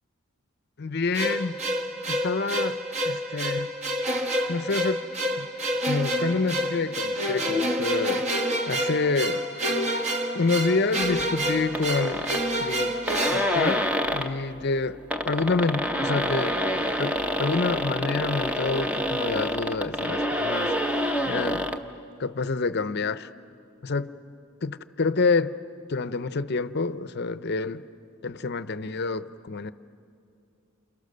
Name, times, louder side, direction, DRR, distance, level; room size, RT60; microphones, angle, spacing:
voice 1, 0.8-1.6 2.1-2.8 3.0-3.7 4.5-5.0 5.3-5.5 5.9-8.3 8.7-9.5 10.3-12.2 12.6-13.0 13.3-15.0 15.2-16.6 17.0-21.6 22.2-23.3 23.8-24.1 24.6-25.6 25.9-27.8 28.2-29.7, left 3 dB, 50° left, 14 dB, 0.6 m, -27 dB
sound 1, 1.1-14.4, equal, 30° right, 1.4 m, -28 dB
sound 2, 11.7-12.4 12.8-12.9 13.1-14.4 14.9-21.8, equal, 5° right, 0.8 m, -27 dB
29.0 x 27.5 x 6.7 m, 2.5 s
head